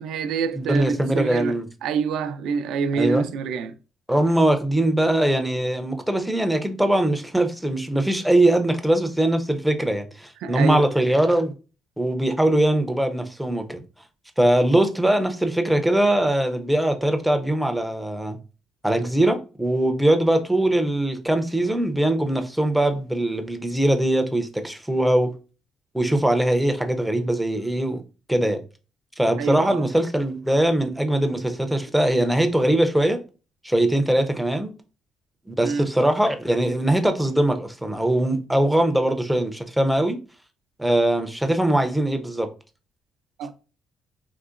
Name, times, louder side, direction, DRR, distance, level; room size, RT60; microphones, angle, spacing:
voice 1, 0.0-3.7 10.4-10.9 29.4-29.9 35.6-35.9 43.4-43.5, right 6 dB, 85° right, 0.4 m, -26 dB
voice 2, 0.6-1.7 3.0-3.2 4.1-11.5 12.0-13.8 14.4-18.4 18.8-25.4 25.9-28.0 28.3-28.6 29.2-33.2 33.6-34.7 35.5-40.2 40.8-42.5, right 1 dB, ahead, 0.5 m, -21 dB
3.8 x 2.8 x 2.4 m
cardioid pair, 155°, 0 cm